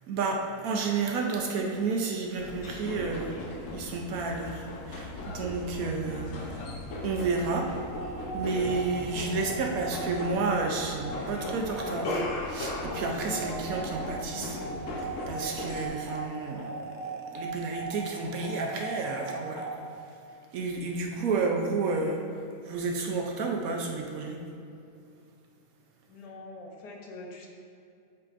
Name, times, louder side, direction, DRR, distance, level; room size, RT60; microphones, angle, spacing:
voice 1, 0.1-3.4 3.7-6.6 7.0-7.7 8.3-14.6 14.9-19.8 20.5-22.2 22.6-24.4, right 4 dB, 70° right, 1 dB, 0.9 m, -31 dB
sound 1, 2.4-15.9, left 2 dB, 60° left, 1.0 m, -37 dB
sound 2, 7.9-19.9, right 2 dB, 35° left, 0.9 m, -39 dB
voice 2, 21.1-21.5 26.1-27.5, left 2 dB, 85° left, 1 dB, 1.4 m, -44 dB
8.3 x 4.9 x 2.5 m, 2.5 s
omnidirectional pair, 1.8 m